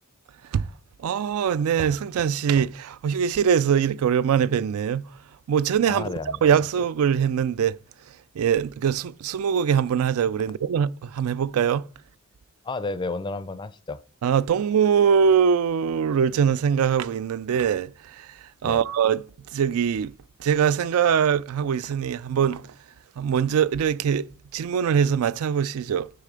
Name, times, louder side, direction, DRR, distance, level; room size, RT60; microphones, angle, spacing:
voice 1, 1.0-5.1 5.5-6.1 6.4-7.8 8.4-11.9 14.2-20.1 20.4-22.7 23.2-24.3 24.5-26.1, right 7 dB, 80° right, 0.3 m, -22 dB
voice 2, 5.9-6.4 12.6-14.0 18.6-18.8, left 3 dB, 20° left, 0.4 m, -31 dB
10.0 x 3.3 x 5.1 m
head